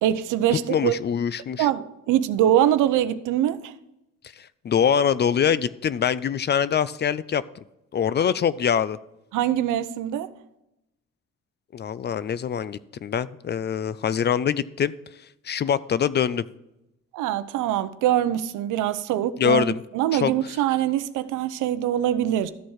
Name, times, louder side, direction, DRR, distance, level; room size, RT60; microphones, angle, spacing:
voice 1, 0.0-0.9 1.6-3.7 9.3-10.3 17.1-19.7 19.9-22.5, right 11 dB, 90° right, 0.6 m, -23 dB
voice 2, 0.7-1.7 4.4-7.4 7.9-9.0 11.7-14.9 15.5-16.4 19.4-19.8 20.1-20.3, left 8 dB, 35° left, 0.4 m, -24 dB
13.0 x 4.4 x 4.7 m
cardioid pair, 90°, 30 cm